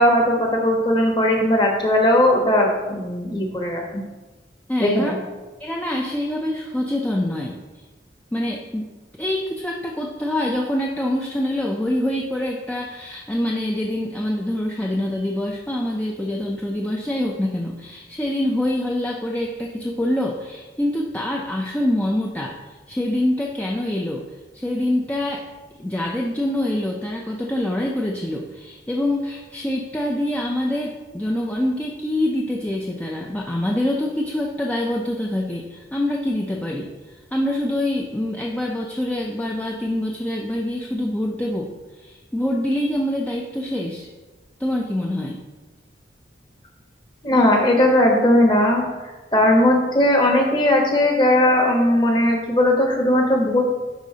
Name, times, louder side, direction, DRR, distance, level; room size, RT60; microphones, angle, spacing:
voice 1, 0.0-4.0 4.8-5.2 47.2-48.8 49.3-53.6, left 1 dB, 25° left, 0 dB, 1.0 m, -18 dB
voice 2, 4.7-5.1 5.6-7.6 8.3-8.9 9.2-22.6 22.9-24.3 24.5-25.4 25.8-36.9 37.3-44.1 44.6-45.4, left 1 dB, 10° left, -1 dB, 0.4 m, -25 dB
10.5 x 4.0 x 2.8 m, 1.2 s
head